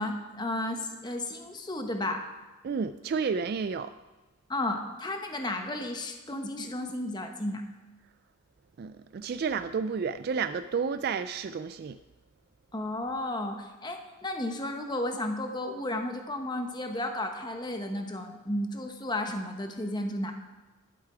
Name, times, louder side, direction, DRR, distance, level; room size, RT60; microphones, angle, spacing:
voice 1, 0.0-2.2 4.5-7.6 12.7-20.3, left 1 dB, 20° left, 4 dB, 0.9 m, -33 dB
voice 2, 2.6-3.9 8.8-12.0, right 5 dB, 50° right, 11 dB, 0.3 m, -31 dB
11.5 x 8.2 x 4.8 m, 1.2 s
head